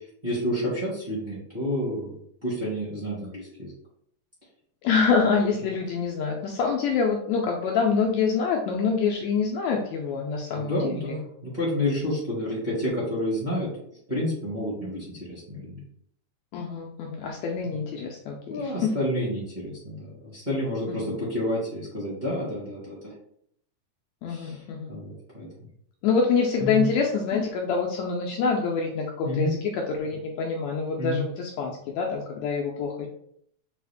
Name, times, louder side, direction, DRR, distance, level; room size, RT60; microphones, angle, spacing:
voice 1, 0.2-2.2 2.4-3.7 10.5-13.7 14.1-15.8 18.5-23.0 24.3-24.6 24.9-25.5 26.6-26.9 29.2-29.5 31.0-31.2, left 1 dB, 25° right, -8 dB, 1.0 m, -29 dB
voice 2, 4.8-11.2 16.5-19.0 20.9-21.0 24.2-24.9 26.0-33.1, left 5 dB, 80° left, 0 dB, 1.6 m, -26 dB
6.1 x 2.4 x 3.4 m, 0.68 s
omnidirectional pair, 3.5 m